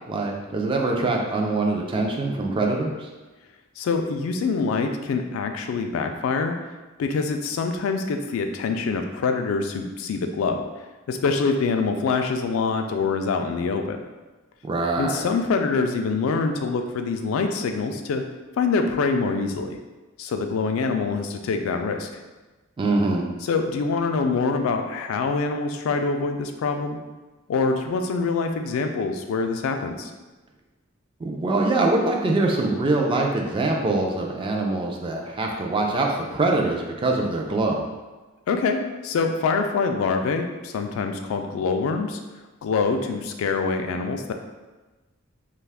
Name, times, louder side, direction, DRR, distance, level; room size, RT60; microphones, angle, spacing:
voice 1, 0.1-3.1 14.6-15.3 22.8-23.3 31.2-37.8, right 2 dB, 25° right, 0 dB, 0.3 m, -24 dB
voice 2, 3.8-6.5 7.0-10.6 11.1-14.0 15.0-18.2 18.6-19.8 20.2-22.2 23.4-27.0 27.5-30.1 38.5-42.2 42.6-44.3, left 4 dB, 75° left, 5 dB, 0.3 m, -25 dB
2.4 x 2.3 x 3.3 m, 1.2 s
head